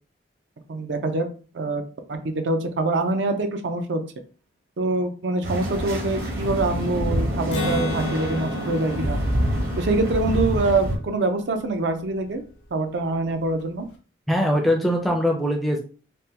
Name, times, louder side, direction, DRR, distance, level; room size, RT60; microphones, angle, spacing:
voice 1, 0.7-1.3 1.5-1.8 2.1-4.0 4.8-9.2 9.8-12.4 12.7-13.8, right 2 dB, 70° right, 6 dB, 0.5 m, -25 dB
sound 1, 5.4-11.0, equal, 50° right, 0.8 m, -26 dB
Acoustic guitar, 7.5-11.2, left 1 dB, 70° left, 0.8 m, -32 dB
voice 2, 14.3-15.8, equal, ahead, 1 dB, 0.4 m, -21 dB
3.4 x 2.1 x 2.8 m, 0.37 s
head